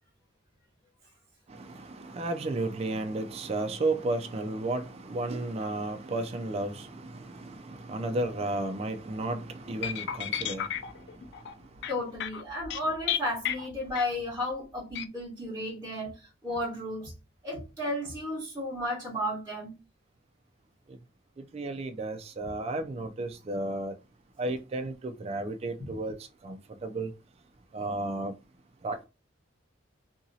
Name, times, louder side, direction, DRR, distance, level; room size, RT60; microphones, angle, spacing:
voice 1, 1.5-10.7 21.5-24.0 24.4-26.2 26.4-27.1 27.7-28.3 28.8-29.1, right 2 dB, 35° right, 0.3 m, -33 dB
sound 1, 9.8-14.4 14.9-15.0, left 10 dB, 60° left, 0.3 m, -33 dB
voice 2, 11.9-17.1 17.4-19.7, left 1 dB, 15° right, 1.1 m, -33 dB
2.8 x 2.6 x 2.6 m
head